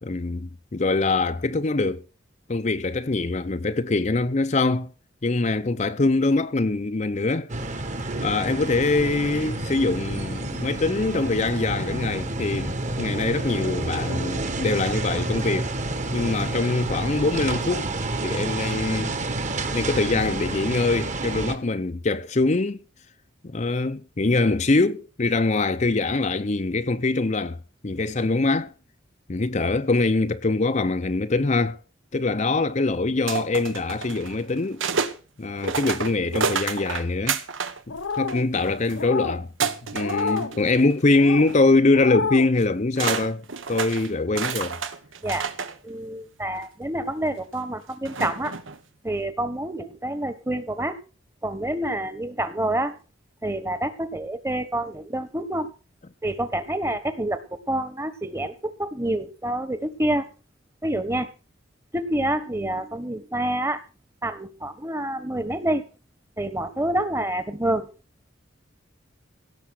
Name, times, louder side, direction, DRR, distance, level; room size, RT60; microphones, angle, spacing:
voice 1, 0.0-2.0 2.5-4.9 5.2-7.5 8.2-15.7 16.1-17.9 18.2-19.1 19.7-22.8 23.4-27.6 27.8-28.7 29.3-31.8 32.1-34.8 35.4-37.4 37.9-39.5 39.9-44.8, left 3 dB, 35° left, 0.6 m, -23 dB
sound 1, 7.5-21.6, right 2 dB, 40° right, 1.6 m, -29 dB
sound 2, 33.3-35.2 35.6-37.8 38.1-39.0 39.6-41.0 41.4-41.6 42.6-42.7 43.0-45.8 46.6-46.7 48.1-48.8, right 5 dB, 80° right, 1.4 m, -29 dB
sound 3, 37.9-38.5 39.0-39.4 40.0-40.5 41.1-41.5 41.9-42.5, left 5 dB, 85° left, 1.1 m, -29 dB
voice 2, 45.8-48.6 49.0-50.9 51.4-52.9 53.4-55.7 56.2-60.3 60.8-61.3 61.9-63.8 64.2-65.9 66.4-67.9, right 1 dB, 15° right, 1.3 m, -27 dB
17.0 x 6.8 x 6.4 m
head